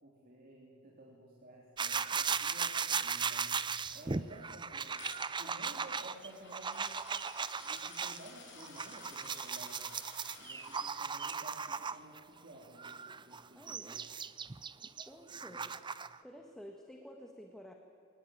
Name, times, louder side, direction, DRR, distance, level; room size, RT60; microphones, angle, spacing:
voice 1, 0.0-3.6 3.9-5.0 5.4-6.9 7.6-10.0 10.4-14.0 15.3-15.7, right 1 dB, 40° right, -3 dB, 3.3 m, -54 dB
sound 1, 1.8-8.2 8.6-12.2 12.8-16.2, right 6 dB, 20° right, 0.5 m, -37 dB
Coin (dropping), 4.9-10.9, left 5 dB, 55° left, 7.0 m, -54 dB
voice 2, 13.5-14.0 15.1-15.7 16.2-17.7, equal, ahead, 2 dB, 1.6 m, -51 dB
22.5 x 19.0 x 9.4 m, 2.5 s
head